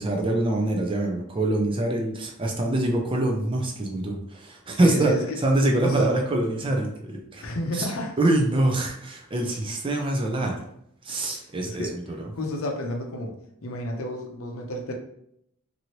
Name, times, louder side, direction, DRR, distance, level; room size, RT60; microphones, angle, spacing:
voice 1, 0.0-5.1 5.4-7.5 7.7-7.9 8.2-10.6 11.0-11.8 12.2-12.3, right 2 dB, 25° right, 2 dB, 0.4 m, -24 dB
voice 2, 4.8-5.4 5.8-6.1 7.4-8.1 11.1-11.9 12.3-13.3 13.6-14.9, left 1 dB, 65° left, 2 dB, 0.6 m, -31 dB
3.0 x 2.6 x 2.8 m, 0.74 s
head